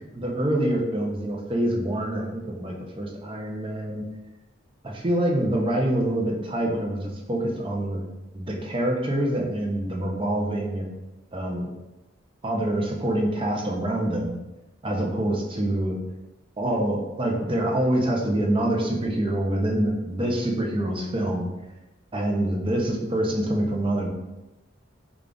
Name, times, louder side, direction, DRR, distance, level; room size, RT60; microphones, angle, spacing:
voice 1, 0.0-4.0 4.8-8.0 8.3-10.9 11.3-11.7 12.4-14.4 14.8-16.0 16.6-21.5 22.1-24.1, right 1 dB, 25° right, 0 dB, 0.6 m, -26 dB
3.7 x 2.4 x 3.4 m, 1.0 s
head